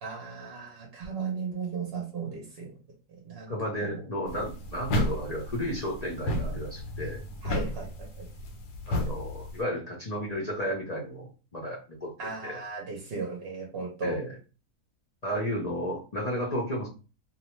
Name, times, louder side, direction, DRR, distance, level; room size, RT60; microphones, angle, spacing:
voice 1, 0.0-2.7 3.2-3.5 3.8-4.0 7.4-8.3 12.2-14.2, right 4 dB, 55° right, 0 dB, 0.7 m, -35 dB
voice 2, 3.5-7.2 8.9-12.6 14.0-14.3 15.2-16.9, equal, 60° left, -3 dB, 0.4 m, -33 dB
sound 1, 4.3-9.6, left 1 dB, 90° left, 1.2 m, -33 dB
2.6 x 2.1 x 3.0 m, 0.33 s
omnidirectional pair, 1.6 m